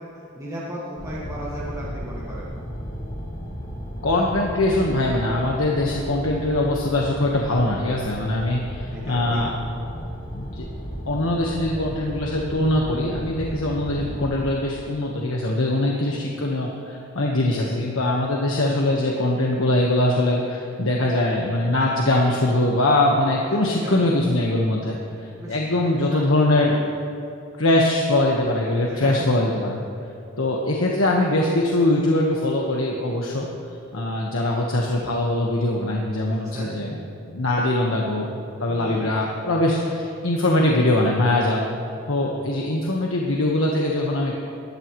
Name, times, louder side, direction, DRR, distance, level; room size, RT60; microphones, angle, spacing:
voice 1, 0.0-2.5 8.3-8.4 8.9-9.4 23.5-24.0 25.4-26.9 28.8-29.3 36.3-36.7 38.6-39.3, equal, 15° right, -7 dB, 1.8 m, -36 dB
sound 1, 1.0-14.5, equal, 40° left, 2.1 m, -34 dB
voice 2, 4.0-9.5 10.3-10.7 11.1-26.7 27.6-29.8 30.4-33.5 33.9-37.0 37.3-38.3 38.6-41.7 42.1-44.4, left 1 dB, 90° left, -1 dB, 1.4 m, -22 dB
19.0 x 13.5 x 3.2 m, 2.7 s
head